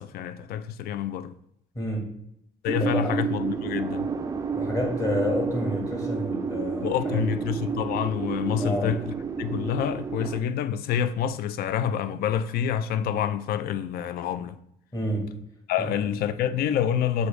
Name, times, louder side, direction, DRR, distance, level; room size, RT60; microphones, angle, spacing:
voice 1, 0.0-1.4 2.6-4.1 6.8-14.6 15.7-17.3, left 9 dB, 65° left, 0.4 m, -27 dB
voice 2, 1.7-2.2 2.8-3.2 4.5-7.2 8.6-9.0 14.9-15.3 15.8-15.9, left 1 dB, 20° left, 1.3 m, -29 dB
sound 1, 2.7-10.4, right 5 dB, 20° right, 0.3 m, -30 dB
6.2 x 2.6 x 3.2 m
cardioid pair, 110°, 17 cm